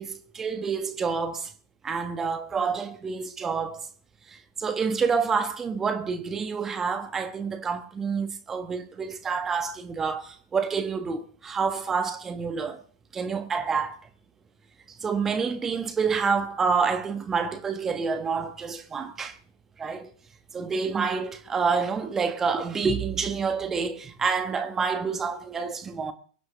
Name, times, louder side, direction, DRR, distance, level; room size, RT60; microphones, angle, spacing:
voice 1, 0.0-1.5 1.8-3.9 4.3-12.8 13.1-14.0 14.9-19.4 19.8-20.1 20.5-26.1, right 5 dB, 20° right, 1.4 m, -28 dB
24.0 x 9.6 x 3.7 m
figure-of-eight pair, 95°, 2 cm